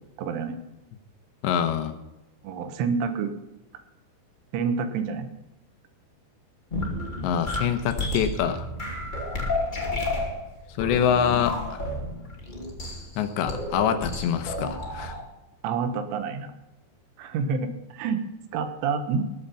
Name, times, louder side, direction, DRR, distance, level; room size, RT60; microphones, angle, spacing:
voice 1, 0.2-0.6 2.4-3.3 4.5-5.3 15.6-16.5 17.2-18.2 18.5-19.3, right 5 dB, 90° right, 8 dB, 3.8 m, -28 dB
voice 2, 1.4-1.9 7.2-8.7 10.8-11.8 13.2-15.2, left 8 dB, 80° left, 9 dB, 3.1 m, -25 dB
sound 1, 6.7-15.2, left 2 dB, 20° left, 1.5 m, -31 dB
20.5 x 7.9 x 5.6 m, 0.98 s
omnidirectional pair, 5.4 m